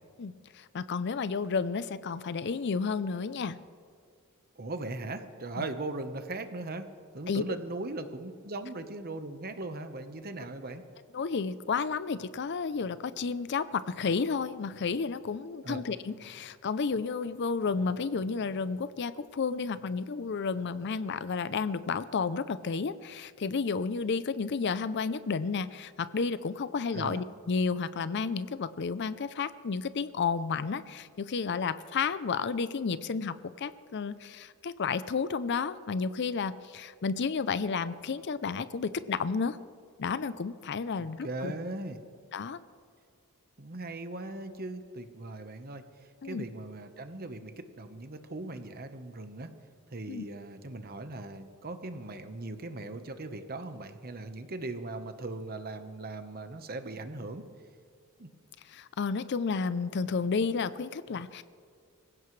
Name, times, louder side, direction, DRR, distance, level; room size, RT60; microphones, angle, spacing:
voice 1, 0.2-3.6 5.6-5.7 7.3-7.4 11.1-39.6 40.0-41.5 42.3-42.6 46.2-46.5 50.1-50.2 58.7-61.4, left 5 dB, 50° left, 14 dB, 0.5 m, -32 dB
voice 2, 4.6-10.8 15.6-15.8 26.9-27.2 41.0-42.0 43.6-49.5 49.9-57.4 58.2-58.3, right 2 dB, 45° right, 8 dB, 1.1 m, -39 dB
25.0 x 16.0 x 3.2 m, 2.2 s
head